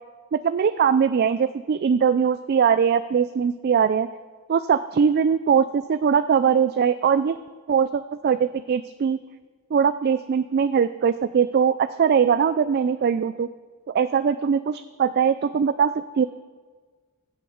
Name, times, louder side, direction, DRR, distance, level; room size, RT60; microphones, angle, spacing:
voice 1, 0.3-4.1 4.5-7.4 7.7-9.2 9.7-13.5 13.9-16.2, right 7 dB, 50° right, 13 dB, 0.3 m, -21 dB
15.5 x 6.5 x 6.3 m, 1.4 s
head